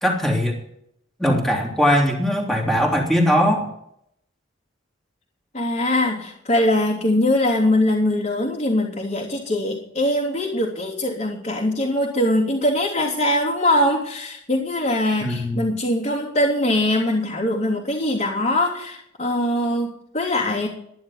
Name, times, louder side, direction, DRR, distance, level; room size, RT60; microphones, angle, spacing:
voice 1, 0.0-0.6 1.2-3.7 15.2-15.6, equal, ahead, -1 dB, 3.1 m, -20 dB
voice 2, 5.5-20.7, left 1 dB, 35° left, -7 dB, 3.3 m, -22 dB
12.5 x 11.5 x 5.9 m, 0.73 s
head